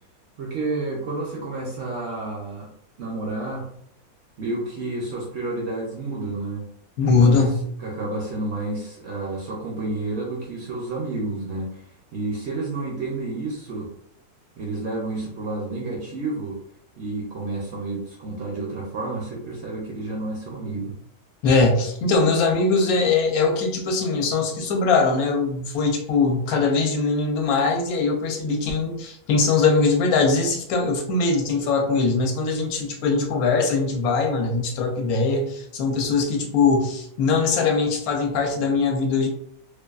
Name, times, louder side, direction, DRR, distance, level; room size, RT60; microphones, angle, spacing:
voice 1, 0.4-2.7 3.0-3.7 4.4-6.6 7.0-7.5 7.8-13.9 14.6-16.6 17.0-20.9, right 2 dB, 65° right, -2 dB, 0.7 m, -30 dB
voice 2, 7.0-7.6 21.4-39.3, left 4 dB, 75° left, 2 dB, 1.0 m, -21 dB
2.6 x 2.3 x 2.3 m, 0.69 s
omnidirectional pair, 1.6 m